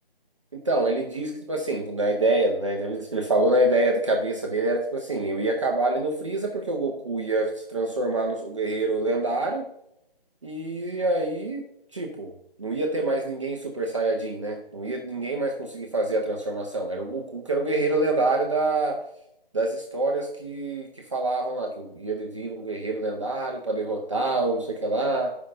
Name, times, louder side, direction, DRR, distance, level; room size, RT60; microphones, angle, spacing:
voice 1, 0.7-9.6 10.4-11.7 11.9-12.3 12.6-19.0 19.5-25.3, right 2 dB, 30° right, 1 dB, 0.7 m, -26 dB
14.5 x 5.5 x 2.6 m, 0.79 s
figure-of-eight pair, 165°, 30 cm